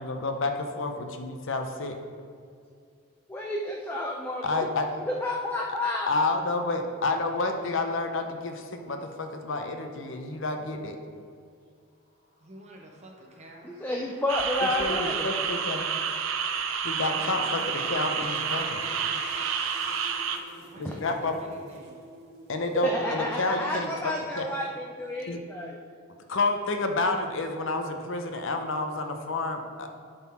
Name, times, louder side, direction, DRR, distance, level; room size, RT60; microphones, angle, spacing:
voice 1, 0.0-0.9 1.2-2.0 4.4-4.9 6.1-11.0 14.6-15.8 16.8-18.8 20.8-21.3 22.5-24.5 25.2-25.4 26.3-29.9, left 2 dB, 60° left, 5 dB, 0.6 m, -29 dB
voice 2, 3.3-4.7 5.1-6.1 13.6-15.3 20.8-20.9 22.8-25.8, left 1 dB, 10° left, -1 dB, 0.4 m, -30 dB
sound 1, 12.4-20.2, left 1 dB, 45° left, 1.1 m, -47 dB
voice 3, 12.4-13.7 17.0-17.4 20.7-22.0, right 1 dB, 30° right, 0 dB, 0.9 m, -49 dB
sound 2, 14.3-20.4, right 7 dB, 65° right, 0.5 m, -30 dB
sound 3, 17.1-22.9, equal, 50° right, 1.4 m, -49 dB
11.0 x 3.9 x 4.3 m, 2.3 s
head